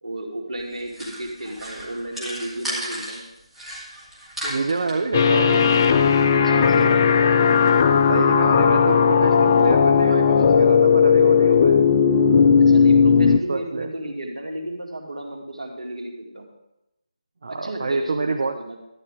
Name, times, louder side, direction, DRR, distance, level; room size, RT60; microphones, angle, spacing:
voice 1, 0.0-3.3 4.4-5.1 6.3-7.1 12.6-16.5 17.5-18.8, right 1 dB, 70° right, 1 dB, 2.5 m, -33 dB
sound 1, 0.6-3.2 3.5-5.0, equal, ahead, 1.6 m, -34 dB
voice 2, 4.5-5.6 8.1-11.8 13.3-13.9 17.4-18.6, right 3 dB, 50° right, 6 dB, 0.6 m, -27 dB
sound 2, 5.1-13.4, left 6 dB, 25° left, 0.4 m, -16 dB
12.0 x 9.2 x 3.7 m, 0.89 s
figure-of-eight pair, 160°, 4 cm